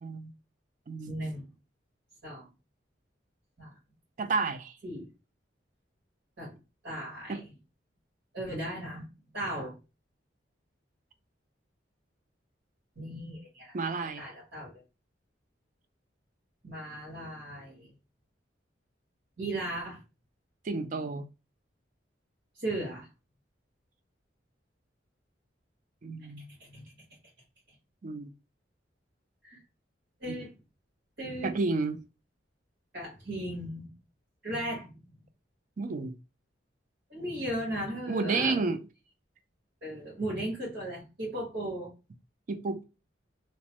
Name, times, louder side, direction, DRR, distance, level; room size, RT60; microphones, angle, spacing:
voice 1, 0.0-0.3 0.9-1.2 4.2-4.7 7.3-7.4 13.7-14.3 20.6-21.3 26.0-26.5 28.0-28.3 31.4-32.0 35.8-36.1 38.1-38.8 42.5-42.8, right 4 dB, 45° right, 0.4 m, -31 dB
voice 2, 1.1-1.5 2.2-2.5 3.6-3.7 4.8-5.0 6.4-6.5 6.8-7.4 8.3-9.0 9.3-9.7 13.0-13.8 14.2-14.7 16.6-17.9 19.4-20.0 22.6-23.1 26.7-26.8 29.4-29.6 30.2-30.5 31.2-31.5 32.9-33.9 34.4-34.9 37.1-38.6 39.8-41.9, right 1 dB, 70° right, 1.6 m, -36 dB
3.0 x 2.1 x 2.9 m
head